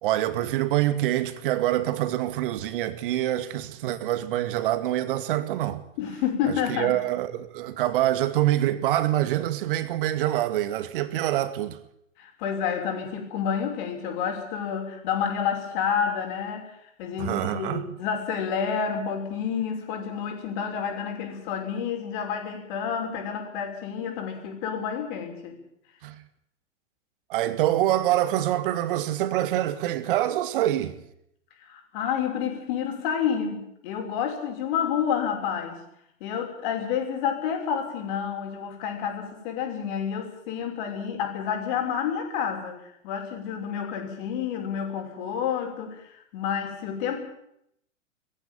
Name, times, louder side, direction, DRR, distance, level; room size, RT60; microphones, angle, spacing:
voice 1, 0.0-5.8 6.5-11.8 17.2-17.8 26.0-26.2 27.3-31.0, right 13 dB, 45° right, 2.2 m, -25 dB
voice 2, 6.0-7.0 12.2-16.7 17.0-25.6 31.6-35.8 36.2-42.8 43.0-47.2, left 7 dB, 40° left, 6.4 m, -29 dB
21.5 x 15.0 x 9.2 m
figure-of-eight pair, 105°, 38 cm